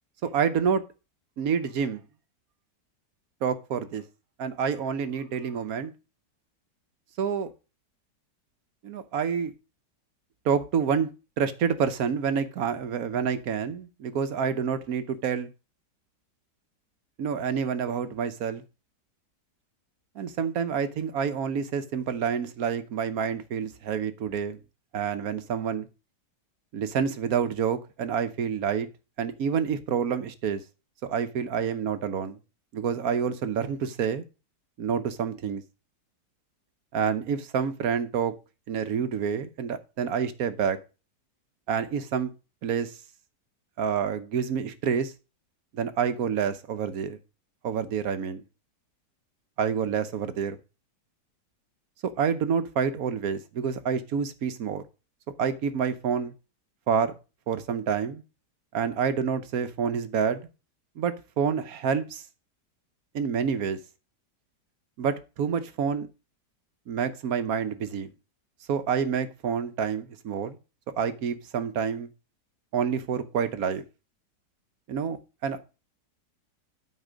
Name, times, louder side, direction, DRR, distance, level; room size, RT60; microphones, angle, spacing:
voice 1, 0.2-0.8 1.4-2.0 3.4-4.0 4.4-5.9 7.2-7.5 8.8-9.5 10.4-11.1 11.4-15.5 17.2-18.6 20.1-24.6 24.9-25.9 26.7-28.9 29.2-30.6 31.0-32.4 32.7-34.2 34.8-35.6 36.9-38.3 38.7-40.8 41.7-42.3 42.6-42.9 43.8-45.1 45.7-47.2 47.6-48.4 49.6-50.6 52.0-54.8 55.4-56.3 56.9-57.1 57.5-58.2 58.7-60.5 61.0-62.2 63.1-63.8 65.0-66.1 66.9-68.1 68.7-70.6 71.0-72.1 72.7-73.8 74.9-75.2 75.4-75.6, right 7 dB, 60° right, 1.3 m, -28 dB
12.5 x 4.4 x 5.0 m
omnidirectional pair, 1.8 m